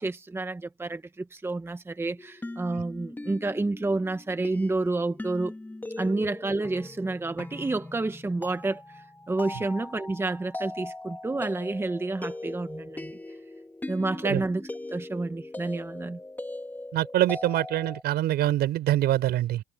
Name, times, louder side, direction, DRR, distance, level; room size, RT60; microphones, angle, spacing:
voice 1, 0.0-5.5 6.0-13.2 13.9-16.2, right 2 dB, 15° right, 1.4 m, -30 dB
sound 1, 2.2-18.0, left 2 dB, 10° left, 2.5 m, -40 dB
voice 2, 16.9-19.6, right 13 dB, 70° right, 4.6 m, -25 dB
cardioid pair, 110°, 17 cm